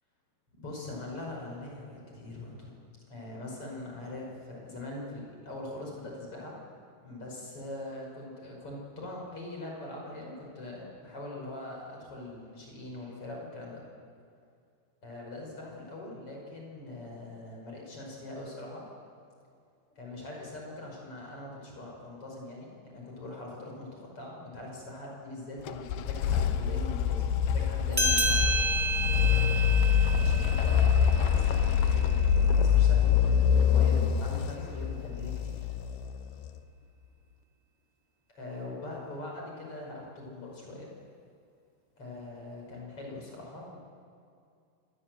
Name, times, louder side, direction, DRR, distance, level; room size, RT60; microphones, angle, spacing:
voice 1, 0.6-2.7 3.1-6.6 7.0-13.8 15.0-18.8 20.0-28.5 30.1-35.7 38.3-40.9 42.0-43.8, left 2 dB, 30° left, -1 dB, 6.1 m, -42 dB
sound 1, 25.7-36.5, left 8 dB, 85° left, 2.3 m, -25 dB
sound 2, 27.9-32.8, right 2 dB, 10° right, 0.9 m, -31 dB
26.0 x 20.0 x 7.9 m, 2.4 s
omnidirectional pair, 5.6 m